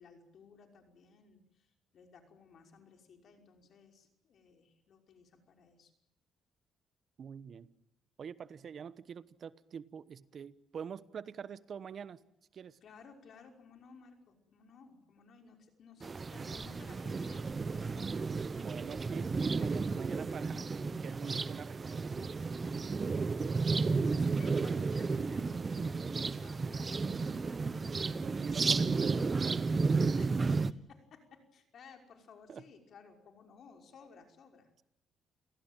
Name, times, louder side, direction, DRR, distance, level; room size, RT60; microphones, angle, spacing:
voice 1, 0.0-5.9 12.8-18.4 22.6-26.0 26.3-28.0 30.1-34.7, left 5 dB, 60° left, 5.6 m, -58 dB
voice 2, 7.2-7.7 8.2-12.2 12.5-12.8 18.5-20.6 21.0-22.4 28.2-29.7 32.5-32.6, right 7 dB, 55° right, 1.1 m, -45 dB
sound 1, 16.0-30.7, right 4 dB, 35° right, 1.0 m, -33 dB
29.0 x 18.0 x 9.1 m
cardioid pair, 90°, 0 cm